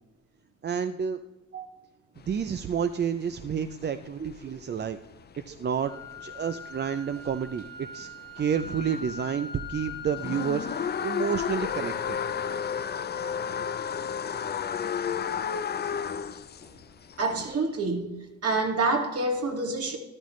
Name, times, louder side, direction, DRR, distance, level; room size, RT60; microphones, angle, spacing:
voice 1, 0.6-1.2 2.3-5.0 5.5-5.9 6.2-8.1 8.4-12.2, right 7 dB, 35° right, 10 dB, 0.5 m, -30 dB
sound 1, 2.2-9.2 9.6-17.5, left 7 dB, 35° left, 0.5 m, -33 dB
sound 2, 5.9-13.9, left 3 dB, 15° left, 1.5 m, -43 dB
voice 2, 17.2-18.1 18.4-20.0, right 3 dB, 50° right, 2 dB, 2.2 m, -27 dB
13.0 x 11.5 x 3.2 m, 1.1 s
cardioid pair, 90°, 30 cm